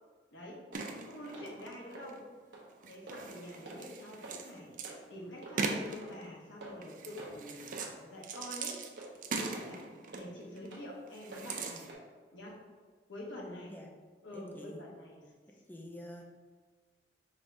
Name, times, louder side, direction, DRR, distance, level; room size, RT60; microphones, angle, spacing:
voice 1, 0.3-0.6 1.0-2.3 2.9-11.8 12.3-12.6 13.1-13.7 14.2-15.2, left 1 dB, 80° left, -2 dB, 1.0 m, -47 dB
sound 1, 0.7-2.2 2.7-4.9 5.6-6.3 6.8-7.9 8.2-10.8 11.1-11.9, right 4 dB, 45° right, 0.4 m, -40 dB
sound 2, 0.7-0.9 1.3-1.5 1.9-2.1 2.5-2.7 3.1-3.3 3.6-3.8 4.2-4.4 4.8-5.0 5.4-5.6 6.0-6.1 6.6-6.9 7.2-7.4 7.7-7.9 8.3-8.5 9.0-9.1 9.5-9.7 10.1-10.2 10.7-10.8 11.3-11.5 11.9-12.0 12.5-12.6, right 2 dB, 65° right, 0.9 m, -47 dB
voice 2, 14.3-14.8 15.7-16.3, equal, 10° left, 0 dB, 0.5 m, -48 dB
5.1 x 3.3 x 2.6 m, 1.4 s
head